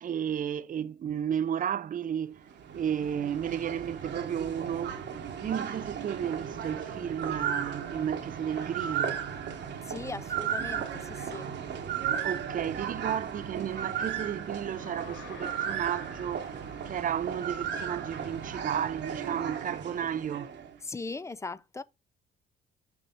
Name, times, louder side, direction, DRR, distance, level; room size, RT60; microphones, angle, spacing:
voice 1, 0.0-2.4 2.7-9.2 12.2-16.6 16.9-20.5, right 9 dB, 45° right, 0.5 m, -33 dB
sound 1, 2.4-20.8, right 8 dB, 60° right, 1.2 m, -35 dB
voice 2, 9.8-11.5 20.8-21.8, left 3 dB, 15° left, 0.3 m, -39 dB
sound 2, 14.7-17.8, left 6 dB, 75° left, 0.9 m, -50 dB
6.1 x 3.3 x 5.1 m
cardioid pair, 90°, 20 cm